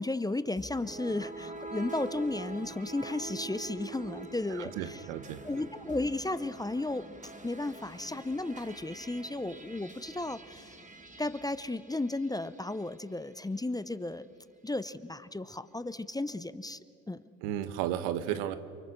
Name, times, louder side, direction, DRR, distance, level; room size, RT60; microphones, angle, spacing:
voice 1, 0.0-5.0 5.4-10.8 11.2-14.3 14.6-17.2, left 2 dB, 10° left, 14 dB, 0.8 m, -34 dB
sound 1, 0.6-12.9, right 3 dB, 20° right, 2.3 m, -45 dB
voice 2, 4.5-5.4 17.4-18.6, right 11 dB, 80° right, 12 dB, 1.3 m, -33 dB
29.0 x 24.0 x 6.5 m, 2.6 s
hypercardioid pair, 65°, 39 cm